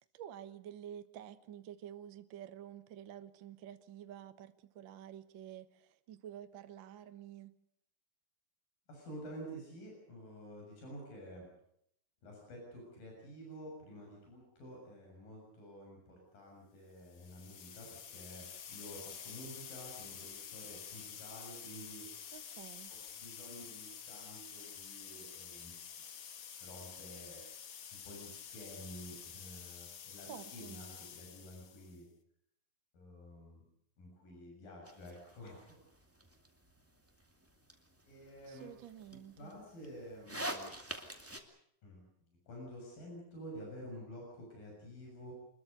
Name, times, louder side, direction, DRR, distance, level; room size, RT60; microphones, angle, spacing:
voice 1, 0.1-7.6 22.3-22.9 30.3-30.8 38.5-39.5, right 10 dB, 65° right, 1.1 m, -50 dB
voice 2, 8.9-11.5 12.2-22.1 22.9-25.8 26.6-27.4 27.9-32.1 32.9-33.6 34.0-35.5 38.1-38.7 39.4-40.7 41.8-42.0 42.5-45.3, equal, 75° left, 8.7 m, -50 dB
sound 1, 17.0-32.0, left 8 dB, 55° left, 1.5 m, -49 dB
sound 2, 34.8-41.4, right 1 dB, 5° right, 1.7 m, -47 dB
26.0 x 21.5 x 6.7 m
omnidirectional pair, 4.0 m